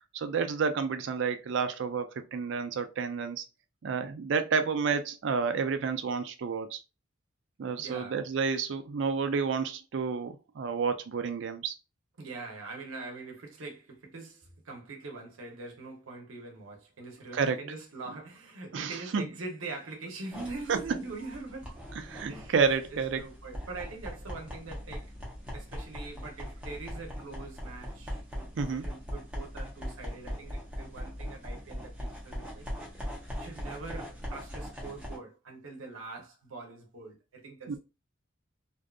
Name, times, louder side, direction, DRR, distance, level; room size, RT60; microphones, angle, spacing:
voice 1, 0.1-3.4 3.8-6.8 7.6-11.7 17.3-17.6 18.7-19.2 20.7-20.8 22.1-23.2 28.6-28.9 37.7-37.8, right 5 dB, 60° right, 0.4 m, -30 dB
voice 2, 7.8-8.2 12.2-21.8 22.3-22.5 22.9-25.1 25.5-32.7 33.4-37.8, right 3 dB, 80° right, 0.7 m, -43 dB
sound 1, 20.3-35.2, equal, 5° right, 0.7 m, -40 dB
2.6 x 2.4 x 2.3 m
head